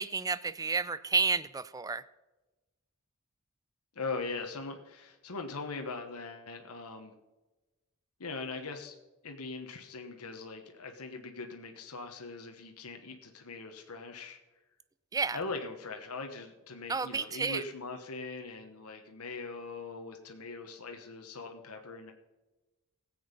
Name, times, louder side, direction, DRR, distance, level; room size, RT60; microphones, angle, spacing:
voice 1, 0.0-2.0 15.1-15.4 16.9-17.6, right 5 dB, 15° right, 16 dB, 0.4 m, -31 dB
voice 2, 3.9-7.1 8.2-8.9 9.2-14.4 15.3-22.1, left 3 dB, 80° left, 4 dB, 1.2 m, -41 dB
16.5 x 7.9 x 5.2 m, 1.1 s
head